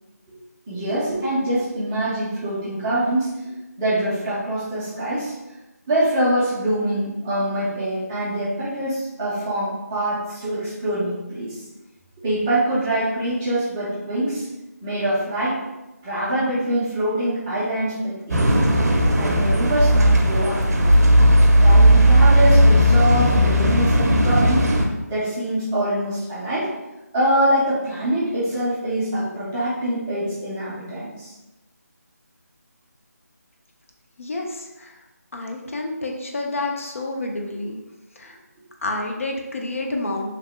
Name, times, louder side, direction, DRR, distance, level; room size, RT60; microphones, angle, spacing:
voice 1, 0.7-3.3 3.8-5.3 5.9-11.6 12.2-14.5 14.8-15.6 16.0-18.7 19.2-20.9 21.6-24.7 25.1-26.7 27.1-31.3, right 1 dB, 10° right, -12 dB, 0.4 m, -24 dB
sound 1, 18.3-24.8, equal, 70° right, 0.5 m, -15 dB
voice 2, 34.2-35.0 35.3-37.8 38.2-38.4 38.8-40.3, left 2 dB, 50° left, 1 dB, 0.4 m, -29 dB
2.8 x 2.0 x 3.1 m, 1.0 s
figure-of-eight pair, 170°, 9 cm